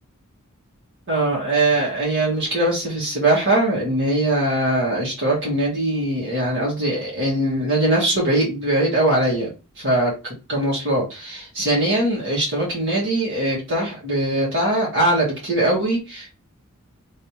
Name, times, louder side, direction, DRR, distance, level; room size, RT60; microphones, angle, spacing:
voice 1, 1.1-9.5 9.8-10.1 10.5-16.4, right 1 dB, 60° right, -4 dB, 1.8 m, -21 dB
3.4 x 3.3 x 2.9 m, 0.29 s
head